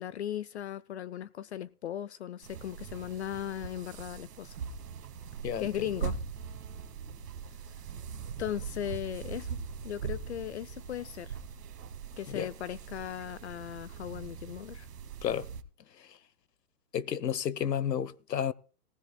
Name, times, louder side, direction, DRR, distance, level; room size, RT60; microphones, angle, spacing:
voice 1, 0.0-4.6 5.6-6.2 8.4-11.4 12.2-14.9, left 11 dB, 45° left, 0.5 m, -37 dB
sound 1, 2.4-15.6, right 6 dB, 70° right, 2.0 m, -41 dB
voice 2, 16.9-18.5, left 9 dB, 90° left, 1.0 m, -31 dB
18.5 x 16.0 x 2.2 m
hypercardioid pair, 140°, 48 cm